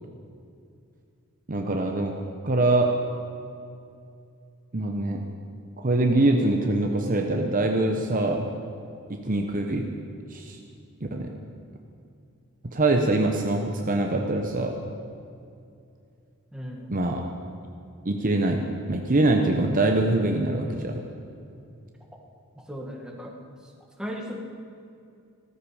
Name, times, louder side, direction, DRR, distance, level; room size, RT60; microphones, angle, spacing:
voice 1, 1.5-3.0 4.7-5.3 5.8-8.5 9.1-9.9 10.3-10.6 11.1-11.3 12.7-14.8 16.9-17.3 18.0-21.0, right 2 dB, 35° right, 3 dB, 0.8 m, -24 dB
voice 2, 16.5-16.9 22.7-23.3 24.0-24.4, equal, 5° right, -1 dB, 1.5 m, -36 dB
15.5 x 14.0 x 5.0 m, 2.5 s
head